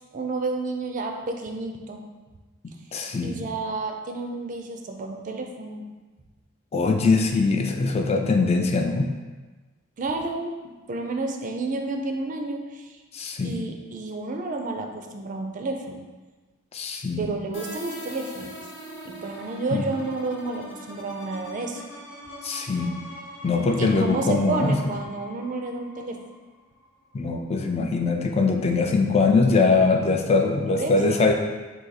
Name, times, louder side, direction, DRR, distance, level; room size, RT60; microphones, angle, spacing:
voice 1, 0.1-2.0 3.2-5.8 10.0-10.6 10.9-12.9 13.4-16.0 17.2-18.5 19.0-21.8 23.8-26.2 30.6-31.3, right 3 dB, 40° right, 3 dB, 0.4 m, -30 dB
voice 2, 2.9-3.5 6.7-9.1 13.1-13.6 16.7-17.2 19.7-19.8 22.4-23.0 23.4-24.9 27.1-31.3, left 3 dB, 30° left, 3 dB, 0.3 m, -22 dB
sound 1, 17.5-27.1, left 1 dB, 70° left, 1.1 m, -42 dB
3.9 x 2.7 x 4.0 m, 1.3 s
head